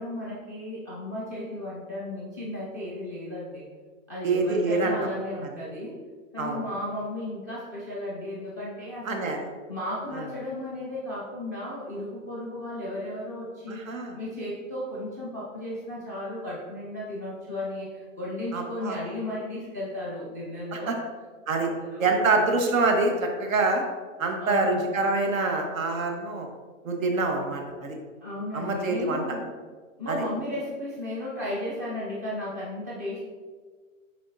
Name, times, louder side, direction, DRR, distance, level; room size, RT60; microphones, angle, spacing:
voice 1, 0.0-3.7 4.1-5.9 6.3-9.4 9.7-20.9 21.6-22.2 24.4-24.9 28.2-29.5 30.0-33.2, left 1 dB, 15° right, -7 dB, 0.4 m, -34 dB
voice 2, 4.2-5.0 6.4-6.6 9.0-9.5 10.1-10.2 13.7-14.2 18.5-19.0 20.7-21.0 21.5-21.7 22.0-23.8 24.2-26.5 26.8-28.0 28.5-29.2 30.1-30.2, right 3 dB, 80° right, 2 dB, 1.4 m, -26 dB
9.9 x 3.7 x 2.7 m, 1.5 s
hypercardioid pair, 165°, 40 cm